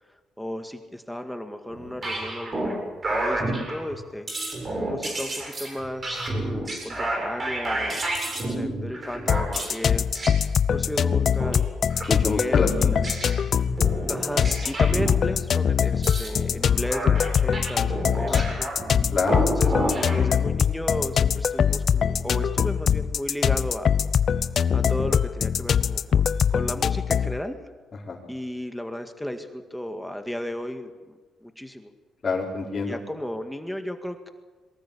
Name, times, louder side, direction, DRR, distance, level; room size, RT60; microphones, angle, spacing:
voice 1, 0.4-4.3 4.8-8.0 8.4-10.1 10.7-11.6 12.1-12.7 14.1-18.7 19.5-23.9 24.7-27.6 28.3-31.9 32.9-34.3, equal, 5° left, 6 dB, 1.9 m, -34 dB
sound 1, 1.7-2.8 3.0-4.0 4.3-9.8 10.1-10.4 11.4-11.6 11.9-12.1 12.5-15.1 15.9-20.2, right 1 dB, 35° right, 7.9 m, -30 dB
sound 2, 9.3-27.4, left 7 dB, 55° left, 0.8 m, -23 dB
voice 2, 12.1-13.0 18.3-18.4 19.1-19.4 28.1-28.2 32.2-33.0, left 4 dB, 35° left, -4 dB, 4.3 m, -27 dB
23.0 x 19.5 x 8.5 m, 1.3 s
cardioid pair, 90°, 0 cm